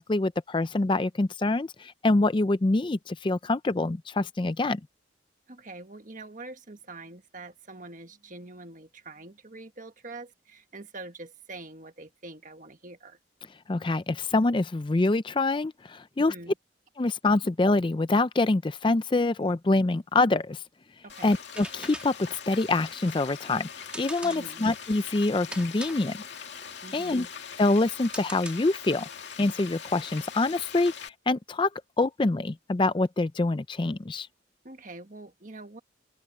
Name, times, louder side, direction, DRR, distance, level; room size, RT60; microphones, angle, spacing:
voice 1, 0.0-4.8 13.7-16.3 17.0-20.6 21.2-23.7 23.9-26.2 26.9-27.3 27.6-29.1 29.4-31.7 32.0-34.3, left 2 dB, 25° left, 0.4 m, -25 dB
voice 2, 5.5-13.2 16.2-16.5 17.4-17.5 21.0-21.4 24.2-24.6 26.8-27.3 34.6-35.8, right 2 dB, 40° right, 1.6 m, -44 dB
Frying (food), 21.1-31.1, left 7 dB, 65° left, 2.3 m, -42 dB
sound 1, 21.4-29.0, right 1 dB, 5° right, 1.8 m, -44 dB
head